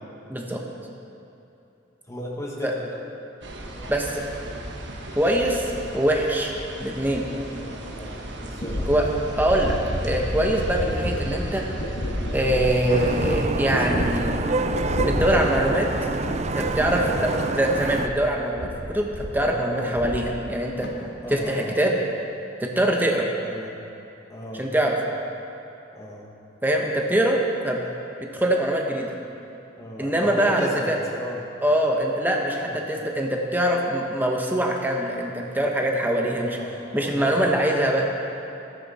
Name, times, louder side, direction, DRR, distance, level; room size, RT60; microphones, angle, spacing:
voice 1, 0.3-0.6 2.6-2.7 3.9-4.2 5.2-6.5 6.8-7.2 8.9-9.0 9.4-9.8 10.0-11.6 12.3-14.4 15.0-15.9 16.5-20.9 21.3-21.9 22.6-23.3 24.6-24.9 26.6-27.4 27.6-27.8 28.2-29.2 30.0-31.0 31.6-36.6 36.9-38.0, right 1 dB, 10° right, 0 dB, 1.1 m, -23 dB
voice 2, 2.1-3.0 3.7-4.0 7.5-8.9 10.4-10.7 12.4-12.6 17.0-17.3 19.4-20.0 21.2-21.8 23.4-23.7 24.3-24.7 25.9-26.3 29.8-31.5 32.6-32.8 36.0-37.6, equal, 15° left, -3 dB, 1.5 m, -36 dB
sound 1, 3.4-13.5, right 1 dB, 65° right, 1.3 m, -37 dB
sound 2, 8.6-18.3 18.6-19.4 19.7-20.6 20.8-21.4, left 1 dB, 60° left, 1.5 m, -30 dB
Vehicle horn car horn honking / Traffic noise roadway noise, 12.9-18.1, right 3 dB, 35° right, 0.5 m, -28 dB
15.0 x 13.5 x 4.2 m, 2.9 s
head